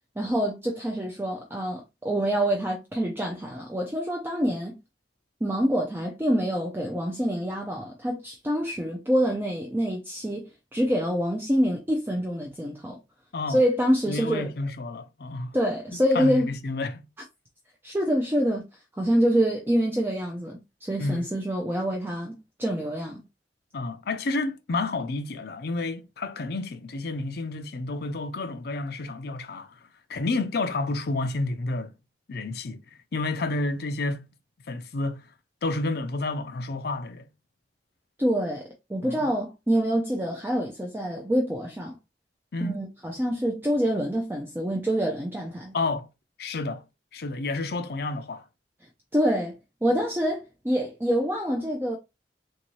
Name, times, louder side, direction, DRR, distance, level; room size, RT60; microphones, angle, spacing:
voice 1, 0.2-4.8 5.4-13.0 13.5-14.5 15.5-16.5 17.8-18.6 19.0-23.2 38.2-42.0 42.6-45.8 49.1-49.6 49.8-52.0, equal, 10° right, 0.5 m, -26 dB
voice 2, 14.1-15.6 16.1-17.0 21.0-21.2 23.7-29.7 30.1-31.9 32.3-34.2 34.7-35.2 35.6-37.3 39.0-39.3 42.5-42.8 45.7-46.1 46.4-46.8 47.1-48.4, left 2 dB, 60° left, 0.5 m, -30 dB
3.5 x 2.7 x 3.1 m
head